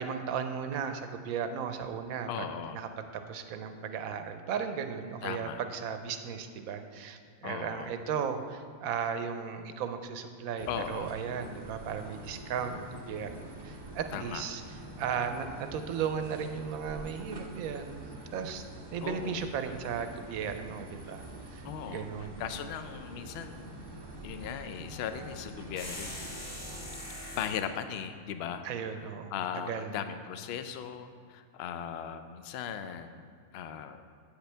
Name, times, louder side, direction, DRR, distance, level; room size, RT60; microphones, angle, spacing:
voice 1, 0.0-2.5 2.7-14.6 15.0-18.0 18.3-18.6 18.9-21.2 21.5-22.4 28.6-29.3 29.7-29.9, right 7 dB, 85° right, 8 dB, 1.1 m, -36 dB
voice 2, 2.3-2.8 5.2-5.6 7.4-7.9 10.7-11.2 14.1-14.4 19.0-19.4 21.6-23.9 24.2-26.2 27.4-34.0, left 8 dB, 65° left, 9 dB, 0.6 m, -38 dB
sound 1, 10.6-27.5, right 1 dB, 30° right, 0.5 m, -46 dB
sound 2, 25.8-27.6, left 1 dB, 40° left, 2.0 m, -41 dB
8.4 x 8.1 x 3.3 m, 2.2 s
omnidirectional pair, 1.5 m